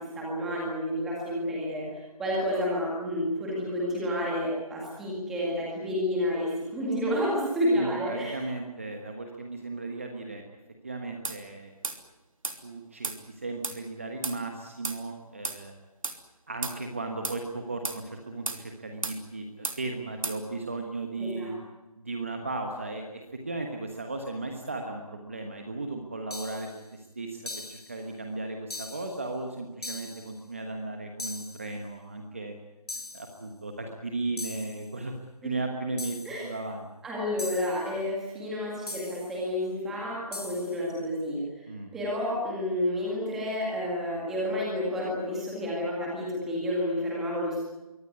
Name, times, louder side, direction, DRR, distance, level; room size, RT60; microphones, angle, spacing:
voice 1, 0.0-8.4 21.2-21.6 35.4-35.5 36.3-36.4 37.0-47.6, left 1 dB, ahead, -4 dB, 2.0 m, -30 dB
voice 2, 7.7-10.4 10.8-11.7 12.6-15.7 16.5-21.5 22.0-32.5 33.1-35.1 35.4-36.2 36.4-36.9 41.7-41.9, right 2 dB, 20° right, 3 dB, 1.3 m, -36 dB
sound 1, 11.2-11.4 11.8-12.0 12.4-12.6 13.0-13.2 13.6-13.8 14.2-14.4 14.8-15.0 15.4-15.6 16.0-16.2 16.6-16.8 17.2-17.4 17.8-18.0 18.5-18.6 19.0-19.2 19.6-19.8 20.2-20.4, right 3 dB, 60° right, 3.2 m, -33 dB
sound 2, 26.3-26.8 27.5-28.0 28.7-29.2 29.8-30.3 31.2-31.7 32.9-33.4 34.4-34.9 36.0-36.5 37.4-37.9 38.9-39.4 40.3-40.8, left 3 dB, 85° left, 6.6 m, -40 dB
23.5 x 18.5 x 9.6 m, 1.1 s
figure-of-eight pair, 180°, 20 cm